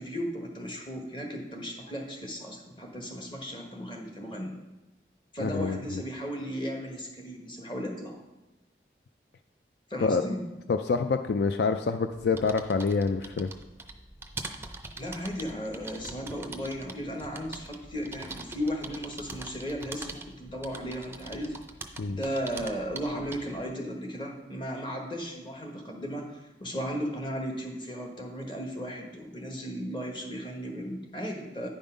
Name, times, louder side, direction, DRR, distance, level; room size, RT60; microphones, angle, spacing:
voice 1, 0.0-4.6 5.3-8.2 9.9-10.4 15.0-21.5 22.1-31.7, equal, 25° left, 1 dB, 1.3 m, -35 dB
voice 2, 5.4-5.8 10.0-10.2 10.7-13.5 22.0-22.2, left 4 dB, 65° left, 8 dB, 0.4 m, -26 dB
sound 1, 12.1-23.6, right 3 dB, 15° right, 0.5 m, -43 dB
9.7 x 5.4 x 5.1 m, 1.0 s
head